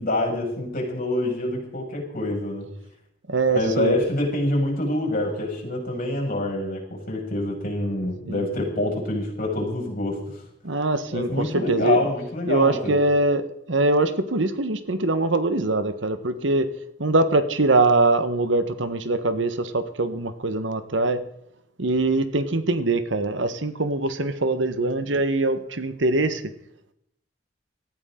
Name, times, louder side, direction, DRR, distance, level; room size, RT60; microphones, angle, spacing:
voice 1, 0.0-2.7 3.5-10.4 11.1-13.0, left 1 dB, 50° left, 1 dB, 6.4 m, -26 dB
voice 2, 3.3-3.9 8.2-8.4 10.6-12.0 12.5-16.7 17.0-21.2 21.8-26.4, right 2 dB, 75° right, 10 dB, 1.4 m, -23 dB
19.0 x 14.5 x 3.9 m, 0.75 s
head